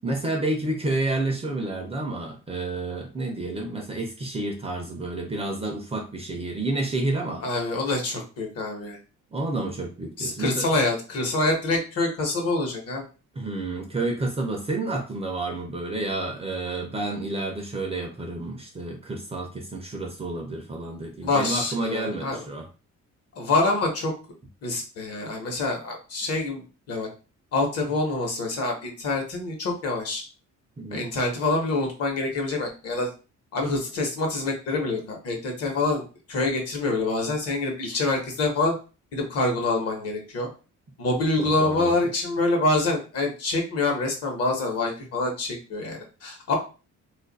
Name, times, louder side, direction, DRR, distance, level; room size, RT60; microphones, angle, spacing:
voice 1, 0.0-7.4 9.3-10.7 13.3-22.7 30.8-31.1 41.4-42.1, right 2 dB, 20° right, 2 dB, 0.5 m, -30 dB
voice 2, 7.4-9.0 10.2-13.0 21.2-22.4 23.4-24.1 24.6-27.1 27.5-30.2 30.9-33.1 33.5-38.7 39.1-40.5 41.0-46.6, left 2 dB, 55° left, 2 dB, 1.0 m, -26 dB
2.6 x 2.5 x 3.9 m, 0.33 s
cardioid pair, 180°, 30 cm